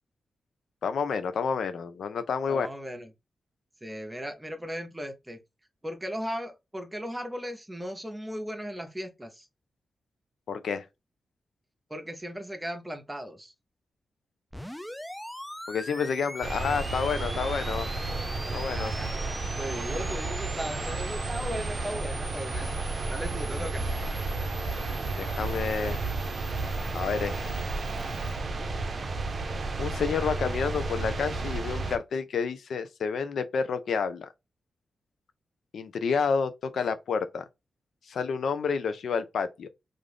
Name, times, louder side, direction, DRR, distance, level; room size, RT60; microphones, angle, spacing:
voice 1, 0.8-2.7 10.5-10.8 15.7-17.9 18.5-18.9 25.1-26.0 26.9-27.5 29.8-34.3 35.7-37.4 38.1-39.7, left 5 dB, 80° left, 0.5 m, -29 dB
voice 2, 2.5-3.1 3.8-5.4 5.8-9.5 11.9-13.5 18.5-23.9, equal, 15° right, 0.7 m, -37 dB
sound 1, 14.5-28.4, equal, 5° left, 0.4 m, -43 dB
sound 2, 16.4-32.0, right 3 dB, 55° right, 0.5 m, -32 dB
2.5 x 2.4 x 3.3 m
cardioid pair, 50°, 0 cm